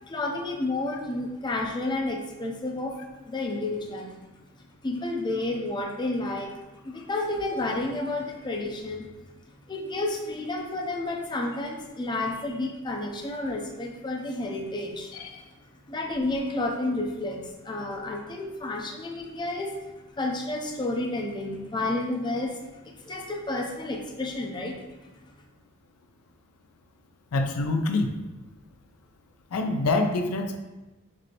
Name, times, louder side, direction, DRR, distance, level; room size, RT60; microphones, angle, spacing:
voice 1, 0.0-3.0 3.2-4.2 4.8-9.1 9.5-15.1 15.9-25.1, left 2 dB, 20° left, 1 dB, 0.4 m, -31 dB
voice 2, 27.3-28.2 29.5-30.6, left 2 dB, 85° left, 6 dB, 0.4 m, -26 dB
6.0 x 2.6 x 2.9 m, 1.1 s
head